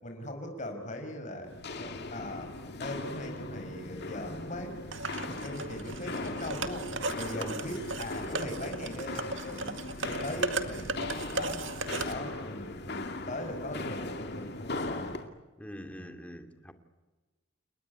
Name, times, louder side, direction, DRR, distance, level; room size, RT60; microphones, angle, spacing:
voice 1, 0.0-2.5 2.8-4.8 5.2-6.9 7.1-10.9 11.3-11.7 12.0-15.1 15.9-16.1, left 1 dB, 35° left, 5.2 m, -40 dB
Walk footsteps, 1.5-15.3, left 2 dB, 55° left, 2.3 m, -39 dB
sound 1, 4.9-12.1, right 3 dB, 70° right, 2.0 m, -36 dB
voice 2, 15.6-16.7, equal, 5° left, 2.5 m, -43 dB
29.5 x 20.5 x 9.7 m
head